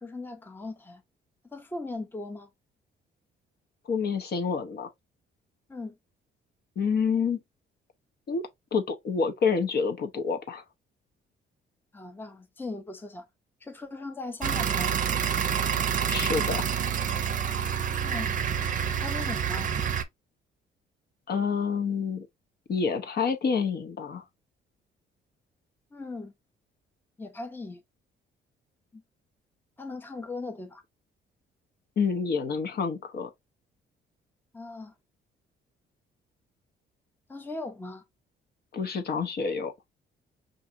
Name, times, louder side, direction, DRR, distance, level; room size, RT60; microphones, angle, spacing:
voice 1, 0.0-1.0 1.4-2.5 5.7-5.9 11.9-13.3 13.6-15.0 18.0-18.3 19.0-19.7 25.9-26.3 27.2-27.8 28.9-29.0 29.8-30.8 34.5-34.9 37.3-38.0, left 2 dB, 10° left, 0.6 m, -38 dB
voice 2, 3.9-4.9 6.8-7.4 8.3-10.6 16.1-16.7 21.3-22.3 22.7-24.2 32.0-33.3 38.7-39.7, left 5 dB, 55° left, 0.8 m, -28 dB
sound 1, 14.4-20.0, right 8 dB, 40° right, 0.6 m, -28 dB
4.7 x 2.6 x 2.6 m
cardioid pair, 90°, 20 cm